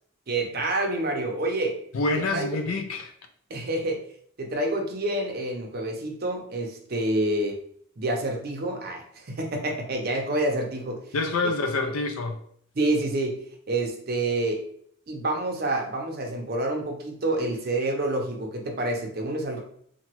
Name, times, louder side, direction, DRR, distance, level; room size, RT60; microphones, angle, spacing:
voice 1, 0.3-1.8 2.1-2.5 3.5-4.0 4.4-7.6 8.0-11.0 12.8-13.4 13.7-14.6 15.1-19.6, right 2 dB, 45° right, 1 dB, 0.6 m, -28 dB
voice 2, 1.9-3.1 11.1-12.4, left 3 dB, 80° left, 7 dB, 0.4 m, -27 dB
2.8 x 2.2 x 3.0 m, 0.64 s
head